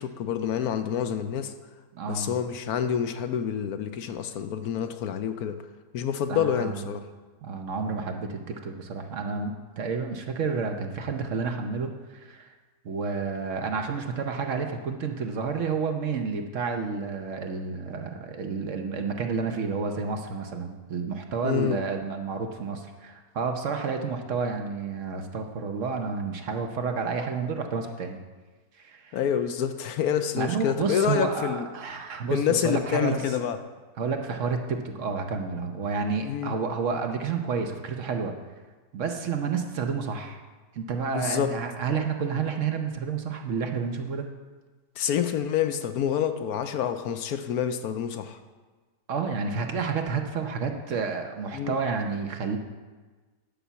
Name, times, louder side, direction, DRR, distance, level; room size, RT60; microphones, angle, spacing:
voice 1, 0.0-1.5 2.1-5.6 5.9-7.0 21.4-21.8 29.1-31.7 32.3-33.6 36.2-36.5 41.1-41.5 45.0-48.4 51.5-51.8, left 9 dB, 70° left, 9 dB, 1.0 m, -27 dB
voice 2, 1.9-2.3 6.3-6.7 7.4-12.5 12.8-28.2 28.8-29.2 30.4-33.2 34.0-38.3 38.9-40.4 40.7-44.3 49.1-52.6, right 5 dB, 55° right, 5 dB, 1.0 m, -30 dB
10.0 x 5.6 x 6.9 m, 1.3 s
omnidirectional pair, 1.8 m